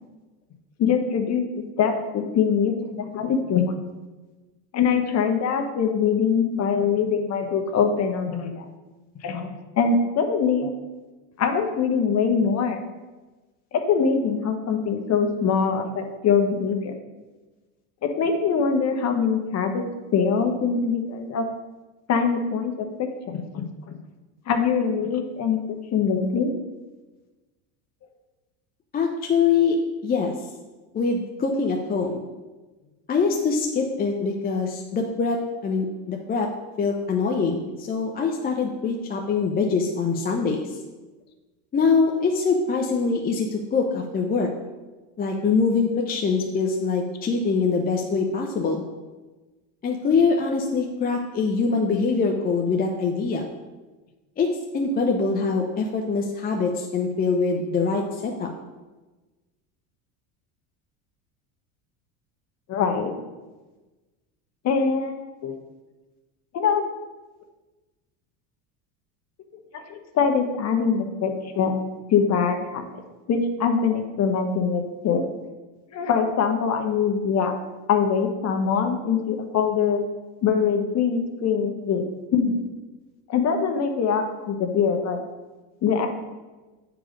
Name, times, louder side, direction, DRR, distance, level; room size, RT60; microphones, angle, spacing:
voice 1, 0.8-1.4 1.8-3.7 4.7-8.6 9.2-10.7 11.4-12.8 13.7-16.9 18.0-19.8 20.1-21.4 22.1-22.9 23.3-24.0 24.5-25.6 25.9-26.5 62.7-63.2 64.6-65.5 66.5-66.8 69.7-71.7 72.1-72.9 73.3-75.2 75.9-77.5 77.9-80.0 80.4-82.0 82.3-82.5 83.3-85.2 85.8-86.1, left 6 dB, 35° left, 5 dB, 1.1 m, -23 dB
voice 2, 28.9-29.8 30.0-30.3 30.9-32.3 33.1-35.4 35.6-36.5 36.8-40.8 41.7-44.5 45.2-48.8 49.8-53.4 54.4-54.5 54.7-58.5, left 4 dB, 20° left, 1 dB, 0.6 m, -23 dB
9.2 x 4.7 x 5.1 m, 1.2 s
supercardioid pair, 130°, 44 cm